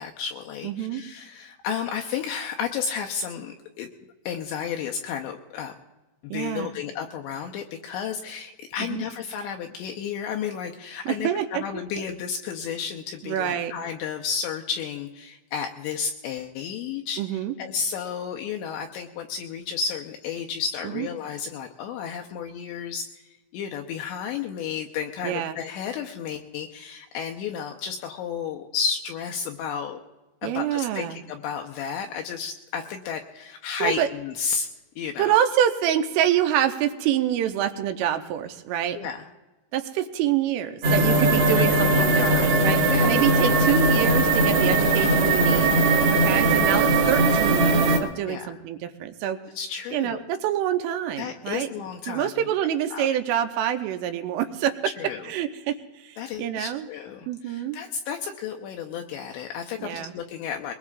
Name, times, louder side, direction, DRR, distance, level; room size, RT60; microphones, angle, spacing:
voice 1, 0.0-3.9 4.3-5.7 6.2-30.0 30.4-34.7 35.0-35.4 38.9-39.3 41.1-41.2 41.6-43.6 48.3-48.5 49.5-50.3 51.2-52.5 52.9-53.1 55.0-55.3 56.2-60.7, left 7 dB, 80° left, 2 dB, 2.6 m, -32 dB
voice 2, 0.6-1.0 6.3-6.7 8.8-9.0 11.1-11.6 13.2-13.7 17.2-17.5 20.9-21.1 25.2-25.6 30.4-31.2 33.8-34.1 35.2-39.0 39.7-45.7 46.1-49.4 49.9-51.7 52.1-54.7 55.3-56.9 57.3-57.8 59.8-60.1, right 10 dB, 90° right, 7 dB, 3.3 m, -26 dB
sound 1, 40.8-48.0, right 2 dB, 60° right, 1.5 m, -20 dB
22.0 x 20.5 x 2.4 m, 1.1 s
omnidirectional pair, 5.7 m